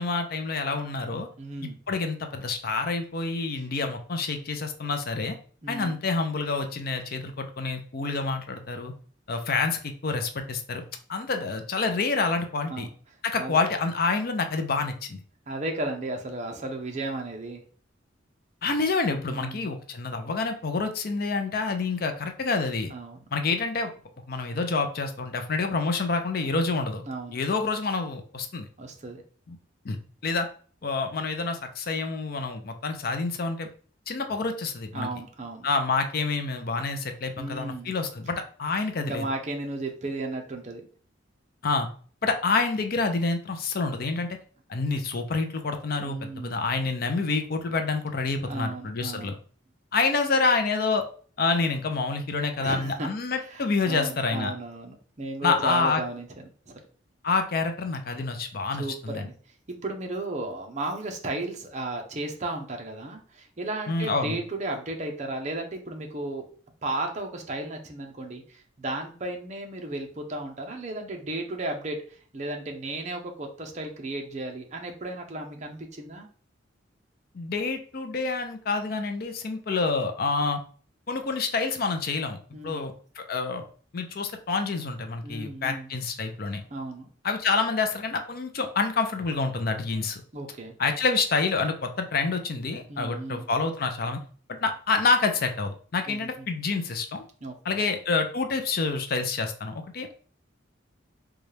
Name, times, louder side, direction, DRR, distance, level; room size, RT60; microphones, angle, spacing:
voice 1, 0.0-1.3 1.6-5.4 5.7-8.9 9.3-10.8 11.1-12.9 13.2-15.2 18.6-22.9 23.3-23.9 24.3-27.0 27.3-28.7 29.5-29.6 29.8-30.0 30.2-30.5 30.8-33.7 34.1-35.1 35.6-39.3 41.6-41.9 42.2-44.3 44.7-49.3 49.9-51.0 51.4-54.5 55.4-56.0 57.2-59.3 63.9-64.4 77.3-80.6 81.1-82.4 82.6-83.6 83.9-86.6 87.2-90.2 90.8-94.2 94.6-97.2 97.6-100.1, left 4 dB, 50° left, 6 dB, 0.5 m, -27 dB
voice 2, 1.4-1.8 5.6-6.0 12.7-12.9 13.4-13.6 15.5-17.6 19.2-19.7 22.9-23.2 27.1-27.4 28.8-29.2 34.9-35.7 37.4-37.9 39.0-40.8 46.0-46.6 48.4-49.3 52.6-53.1 53.4-56.7 58.8-59.3 59.7-66.4 66.8-72.0 72.3-76.3 82.5-82.9 85.2-85.9 86.7-87.1 90.3-90.7 92.9-93.5 96.1-96.5 97.4-97.8, right 2 dB, 35° right, 3 dB, 0.7 m, -34 dB
4.0 x 2.3 x 3.2 m, 0.44 s
head